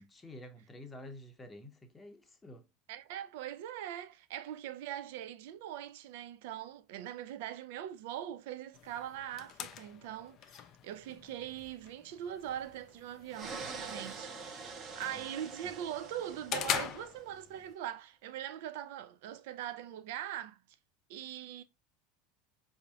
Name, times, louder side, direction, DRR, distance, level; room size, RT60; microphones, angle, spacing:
voice 1, 0.0-2.7 15.1-15.3, left 1 dB, 15° left, 0.7 m, -50 dB
voice 2, 2.9-14.3 14.6-20.6 21.1-21.6, right 11 dB, 55° right, 0.4 m, -42 dB
sound 1, 8.7-17.7, left 9 dB, 40° left, 0.4 m, -43 dB
sound 2, 13.3-17.2, right 4 dB, 35° right, 0.8 m, -45 dB
4.7 x 2.7 x 2.3 m
figure-of-eight pair, 75°, 0 cm